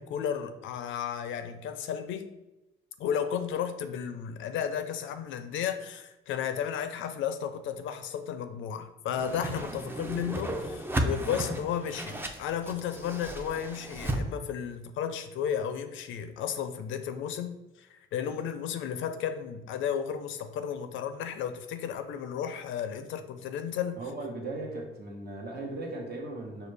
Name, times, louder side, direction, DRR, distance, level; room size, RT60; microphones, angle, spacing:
voice 1, 0.0-2.3 3.0-24.1, left 8 dB, 75° left, 0.4 m, -33 dB
Whoosh swoosh swish, 9.2-14.2, right 1 dB, 10° right, 0.4 m, -34 dB
voice 2, 24.0-26.7, right 2 dB, 50° right, 1.1 m, -37 dB
4.9 x 2.3 x 3.3 m
cardioid pair, 90°, 20 cm